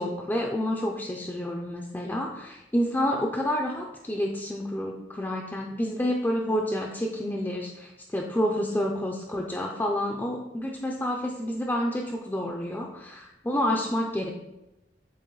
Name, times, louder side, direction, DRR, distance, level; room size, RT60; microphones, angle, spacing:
voice 1, 0.0-14.3, left 1 dB, 10° left, 0 dB, 0.5 m, -29 dB
8.3 x 3.0 x 3.9 m, 0.94 s
head